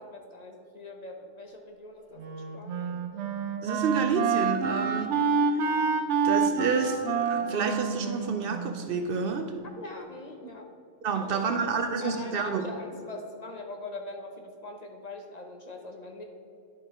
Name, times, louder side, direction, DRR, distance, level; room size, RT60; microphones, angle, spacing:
voice 1, 0.0-3.0 9.8-10.7 11.1-16.2, left 2 dB, 45° left, 2 dB, 0.7 m, -42 dB
Wind instrument woodwind instrument, 2.2-9.4, right 5 dB, 85° right, 1.0 m, -28 dB
voice 2, 3.6-5.1 5.6-5.8 6.2-9.5 11.0-12.6, right 5 dB, 65° right, 6 dB, 0.7 m, -29 dB
10.5 x 5.3 x 3.5 m, 2.5 s
omnidirectional pair, 1.2 m